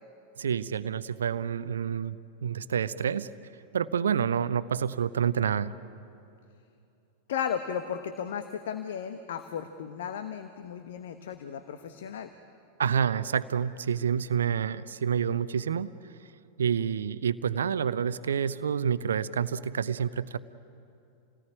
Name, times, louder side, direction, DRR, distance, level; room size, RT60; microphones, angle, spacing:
voice 1, 0.4-3.3 3.7-5.7 12.8-15.9 16.6-20.4, right 7 dB, 65° right, 16 dB, 0.6 m, -28 dB
voice 2, 7.3-12.3, left 8 dB, 60° left, 9 dB, 1.1 m, -35 dB
28.5 x 18.5 x 9.8 m, 2.7 s
figure-of-eight pair, 90°, 0 cm